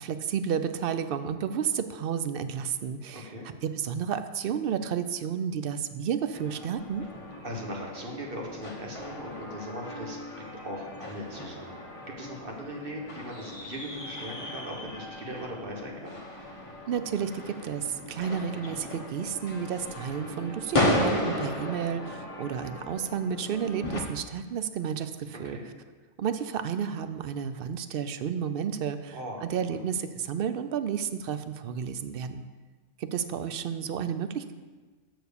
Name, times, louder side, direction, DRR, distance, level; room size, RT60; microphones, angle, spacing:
voice 1, 0.0-3.3 3.6-7.1 16.9-25.6 26.2-32.4 33.0-34.5, right 8 dB, 65° right, 10 dB, 0.6 m, -31 dB
voice 2, 3.1-3.5 7.4-16.2 25.4-25.7 29.1-29.8, equal, 45° right, 0 dB, 1.5 m, -39 dB
sound 1, 6.3-24.0, left 1 dB, 25° left, 1.0 m, -35 dB
7.0 x 6.0 x 6.8 m, 1.3 s
omnidirectional pair, 1.4 m